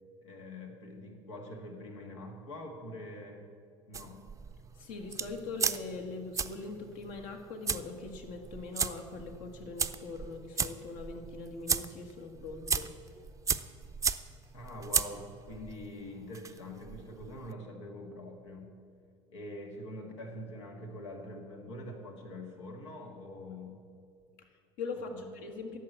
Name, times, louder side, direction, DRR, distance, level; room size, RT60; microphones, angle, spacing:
voice 1, 0.2-3.5 3.9-4.2 14.5-18.7 19.3-23.9 25.1-25.3, left 1 dB, 90° left, 2 dB, 1.6 m, -44 dB
sound 1, 3.9-17.5, right 5 dB, 20° right, 0.5 m, -36 dB
voice 2, 4.7-12.9 24.4-25.8, left 3 dB, 65° left, 4 dB, 1.6 m, -42 dB
11.0 x 6.7 x 7.9 m, 2.3 s
hypercardioid pair, 75°, 15 cm